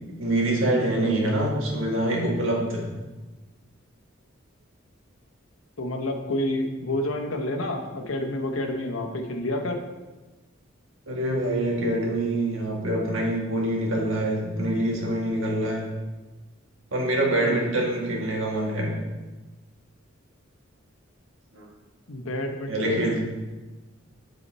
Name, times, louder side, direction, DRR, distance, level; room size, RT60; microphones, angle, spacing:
voice 1, 0.2-2.8 11.1-15.8 16.9-18.9 21.5-21.6 22.7-23.2, right 1 dB, 75° right, -2 dB, 1.6 m, -25 dB
voice 2, 5.8-9.8 22.1-23.2, left 1 dB, 90° left, 4 dB, 0.9 m, -29 dB
8.4 x 4.0 x 4.2 m, 1.2 s
head